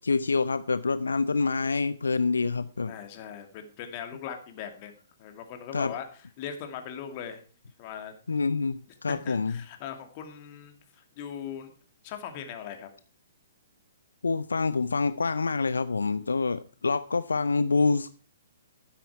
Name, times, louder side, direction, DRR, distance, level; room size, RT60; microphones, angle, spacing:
voice 1, 0.0-2.9 5.7-5.9 8.3-9.6 14.2-18.1, left 4 dB, 75° left, 15 dB, 0.5 m, -26 dB
voice 2, 2.9-6.1 6.4-7.4 7.8-8.2 9.1-11.7 12.0-12.9, left 8 dB, 40° left, 6 dB, 2.3 m, -40 dB
12.0 x 10.0 x 4.7 m, 0.37 s
figure-of-eight pair, 125°, 0 cm